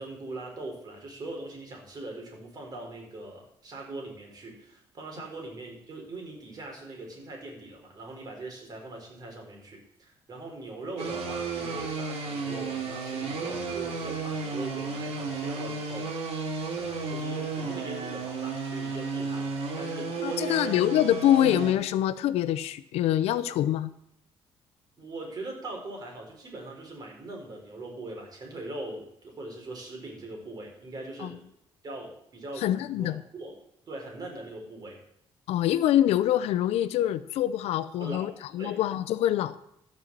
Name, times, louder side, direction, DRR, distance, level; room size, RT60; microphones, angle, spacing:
voice 1, 0.0-16.4 16.7-20.7 25.0-31.4 31.8-33.6 33.9-35.0 38.0-38.3 38.6-38.7, right 2 dB, 40° right, 0 dB, 4.1 m, -41 dB
sound 1, 11.0-21.7, right 4 dB, 75° right, 2.8 m, -33 dB
voice 2, 20.2-23.9 31.2-31.3 32.6-33.2 35.5-39.6, left 12 dB, 85° left, 15 dB, 0.6 m, -25 dB
14.0 x 5.5 x 7.5 m, 0.76 s
cardioid pair, 125°, 10 cm